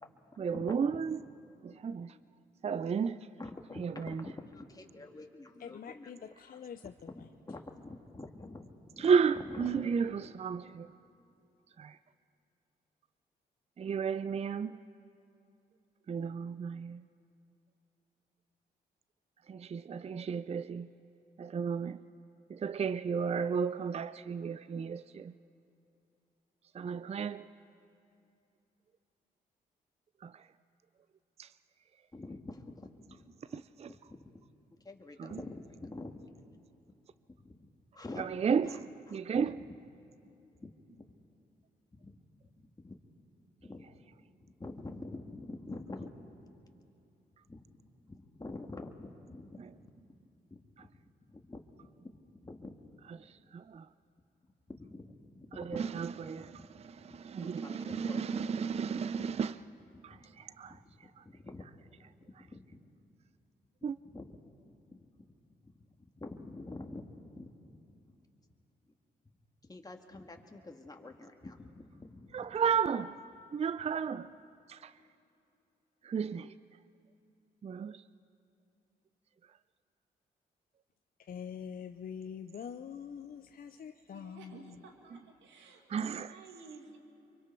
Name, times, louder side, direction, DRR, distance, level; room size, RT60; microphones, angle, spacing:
voice 1, 0.4-1.2 1.6-2.1 2.6-3.3 3.8-4.2 9.0-10.9 11.8-12.0 13.8-14.8 16.1-17.0 19.5-20.9 21.4-22.0 22.5-25.3 26.7-27.5 30.2-30.4 31.4-31.5 33.5-33.9 35.2-35.4 38.2-38.8 39.1-39.6 49.6-49.7 53.1-53.9 55.6-59.6 60.0-60.8 61.2-61.3 63.8-64.0 72.3-73.2 73.5-74.3 74.7-74.9 76.0-76.5 77.6-78.0 85.9-86.4, right 6 dB, 35° right, 0.5 m, -33 dB
voice 2, 3.4-6.1 6.5-6.6 7.1-9.1 9.4-9.8 32.1-32.8 33.1-34.3 34.8-36.3 37.3-37.7 37.9-38.2 38.6-38.8 39.5-39.8 40.6-40.7 41.9-42.2 42.6-43.0 43.6-43.9 44.4-46.1 47.5-47.6 48.1-49.6 50.5-50.7 51.3-51.6 52.3-52.8 54.7-56.0 56.4-56.8 57.1-58.2 58.9-59.0 60.1-60.3 60.7-61.0 61.2-61.7 62.4-62.8 63.9-64.4 64.7-65.0 65.6-65.7 66.2-67.8 69.6-72.6, left 2 dB, 20° left, 1.9 m, -47 dB
voice 3, 5.6-7.1 81.3-84.7, left 8 dB, 55° left, 0.6 m, -45 dB
voice 4, 84.1-87.0, right 4 dB, 85° right, 2.1 m, -54 dB
24.0 x 23.5 x 4.6 m
supercardioid pair, 50°, 18 cm